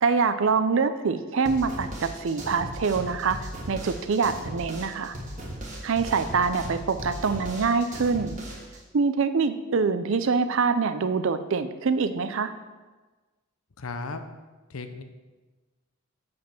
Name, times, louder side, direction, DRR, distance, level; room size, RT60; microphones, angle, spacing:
voice 1, 0.0-3.4 3.7-5.1 5.8-8.4 8.9-12.5, right 5 dB, 60° right, 11 dB, 0.5 m, -25 dB
sound 1, 1.4-8.8, equal, 35° right, 1.4 m, -37 dB
voice 2, 13.8-14.2 14.7-15.0, left 3 dB, 70° left, 8 dB, 0.7 m, -35 dB
7.3 x 5.0 x 5.9 m, 1.2 s
head